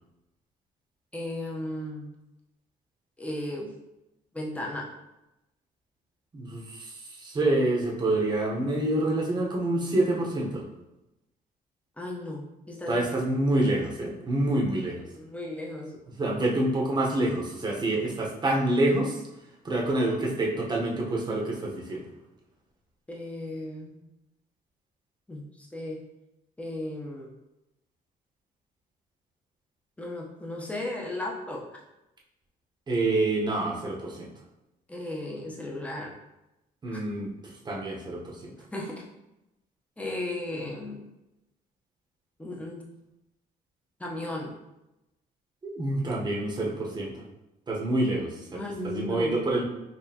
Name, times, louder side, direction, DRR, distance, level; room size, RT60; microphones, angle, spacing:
voice 1, 1.1-2.1 3.2-3.8 4.3-4.9 12.0-13.1 15.1-16.0 23.1-24.0 25.3-26.0 26.6-27.3 30.0-31.8 34.9-36.2 36.9-37.0 38.7-39.1 40.0-41.0 42.4-42.9 44.0-44.5 48.5-49.4, left 1 dB, 10° left, -1 dB, 0.8 m, -35 dB
voice 2, 6.3-10.6 12.9-15.1 16.2-19.2 19.6-22.0 32.9-34.3 36.8-37.3 37.6-38.5 45.6-47.1 47.7-49.6, right 2 dB, 25° right, -2 dB, 1.0 m, -27 dB
4.3 x 2.8 x 2.8 m, 0.93 s
cardioid pair, 110°, 17 cm